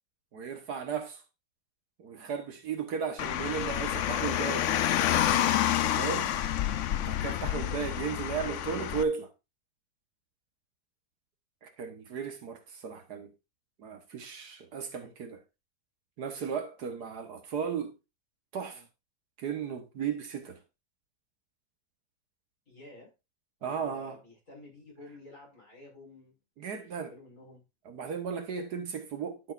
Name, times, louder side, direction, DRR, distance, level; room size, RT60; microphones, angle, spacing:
voice 1, 0.3-1.2 2.0-4.7 5.7-6.3 7.0-9.3 11.6-13.3 13.8-15.4 16.2-17.9 18.5-18.8 19.4-20.6 23.6-24.2 26.6-27.1 27.9-29.5, right 6 dB, 65° right, 1.7 m, -35 dB
Car, 3.2-9.0, left 11 dB, 70° left, 0.7 m, -28 dB
voice 2, 22.7-23.1 23.6-26.3 26.8-27.6, left 2 dB, 45° left, 6.0 m, -52 dB
11.5 x 6.4 x 2.5 m
omnidirectional pair, 1.9 m